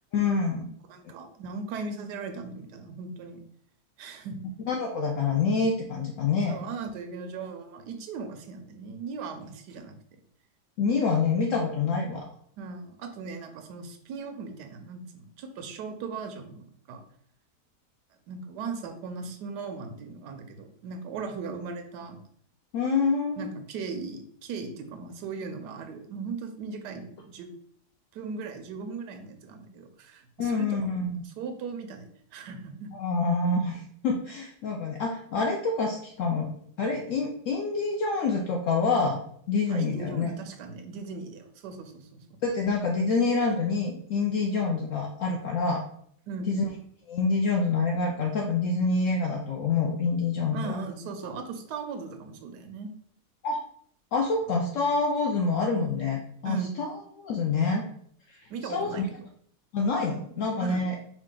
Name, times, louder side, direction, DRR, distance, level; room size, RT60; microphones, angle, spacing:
voice 1, 0.1-0.7 1.0-1.1 4.7-6.6 10.8-12.3 22.7-23.5 30.4-31.2 32.9-36.5 36.8-39.2 39.5-40.3 42.4-45.8 46.5-46.6 47.1-50.8 53.4-53.6 54.1-56.9 57.2-57.8 58.3-59.1 59.7-61.0, left 4 dB, 70° left, 1 dB, 0.8 m, -27 dB
voice 2, 0.9-3.4 4.0-4.4 6.5-10.2 12.6-17.0 18.3-22.2 23.4-27.5 28.1-31.0 31.2-32.9 39.7-42.2 46.3-46.5 50.5-52.9 56.4-56.8 58.5-59.1 60.6-60.8, right 4 dB, 90° right, 7 dB, 1.2 m, -38 dB
4.9 x 2.4 x 3.7 m, 0.64 s
omnidirectional pair, 1.7 m